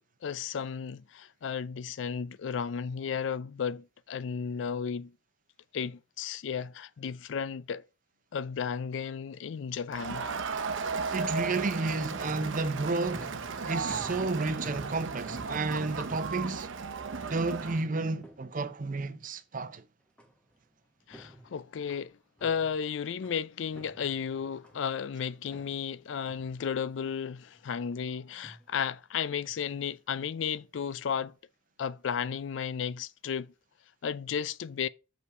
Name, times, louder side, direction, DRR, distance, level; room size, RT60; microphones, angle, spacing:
voice 1, 0.2-5.1 5.7-7.8 8.3-10.3 21.1-31.3 31.8-33.5 34.0-34.9, left 7 dB, 70° left, 0.4 m, -34 dB
Crowd, 9.9-17.9, right 5 dB, 80° right, 0.7 m, -35 dB
voice 2, 11.1-13.3 13.7-16.7 17.3-19.8, right 3 dB, 45° right, 0.7 m, -31 dB
OM-FR-porte, 13.1-19.1 20.2-20.7 21.0-23.4 23.7-25.0 25.5-27.1 27.5-28.0 28.3-28.7 29.4-29.8 30.3-30.6, right 1 dB, 5° left, 1.2 m, -52 dB
6.3 x 5.4 x 4.8 m
head